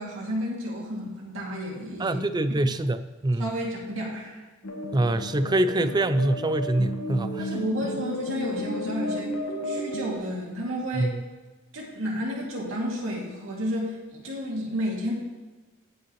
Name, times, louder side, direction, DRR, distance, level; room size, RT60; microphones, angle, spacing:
voice 1, 0.0-2.2 2.6-2.7 3.4-4.4 7.4-9.4 9.6-11.1 11.7-15.1, equal, 65° right, -3 dB, 2.5 m, -31 dB
voice 2, 2.0-3.5 4.9-7.5 10.9-11.2, right 1 dB, 20° right, 12 dB, 0.4 m, -25 dB
sound 1, 4.6-10.1, left 1 dB, 85° left, 1.4 m, -33 dB
18.0 x 6.1 x 3.1 m, 1.3 s
head